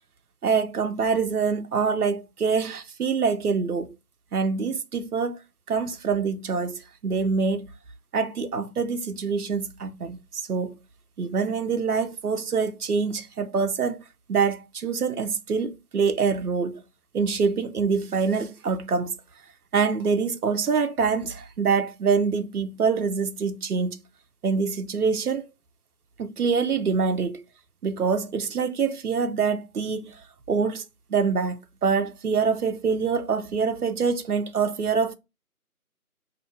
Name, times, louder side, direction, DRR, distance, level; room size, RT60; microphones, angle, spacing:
voice 1, 0.4-3.9 4.3-5.4 5.7-7.7 8.1-10.8 11.2-14.0 14.3-16.8 17.1-19.2 19.7-24.0 24.4-25.4 26.2-27.4 27.8-30.2 30.5-30.8 31.1-35.1, right 5 dB, 85° right, 0.6 m, -25 dB
2.8 x 2.6 x 4.4 m
figure-of-eight pair, 160°, 44 cm